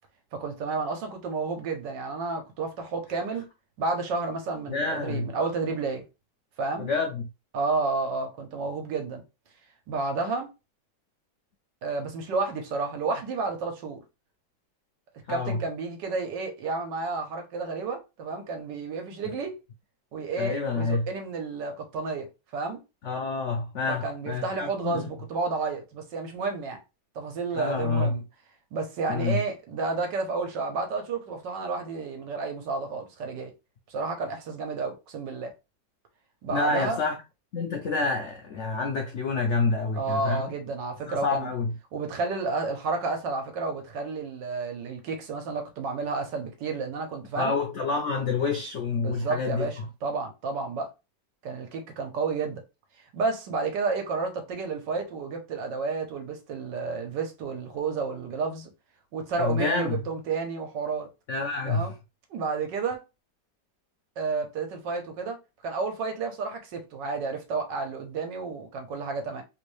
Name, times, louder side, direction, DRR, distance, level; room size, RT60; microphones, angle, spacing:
voice 1, 0.3-3.5 3.8-6.0 6.6-6.9 7.5-9.2 9.9-10.5 11.8-14.0 15.3-19.6 20.1-22.8 23.9-26.8 27.1-28.2 28.7-33.5 33.9-35.5 36.4-37.0 39.9-41.5 41.9-47.5 49.0-50.9 51.4-52.6 53.1-58.7 59.1-61.1 61.7-61.9 62.3-63.0 64.2-65.4 65.6-69.4, right 4 dB, 75° right, 1.4 m, -31 dB
voice 2, 4.7-5.3 6.8-7.3 15.3-15.6 20.4-21.1 23.0-25.1 27.5-28.2 29.1-29.4 36.5-37.2 37.5-40.5 41.1-41.7 47.3-49.9 59.4-60.0 61.3-61.9, left 4 dB, 80° left, 0.6 m, -28 dB
3.3 x 2.6 x 3.1 m
omnidirectional pair, 2.0 m